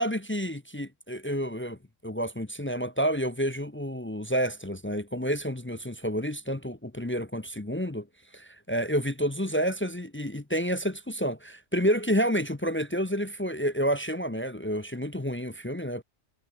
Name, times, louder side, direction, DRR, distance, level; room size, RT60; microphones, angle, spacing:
voice 1, 0.0-8.1 8.3-16.0, equal, 15° left, 0.4 m, -29 dB
omnidirectional pair, 1.4 m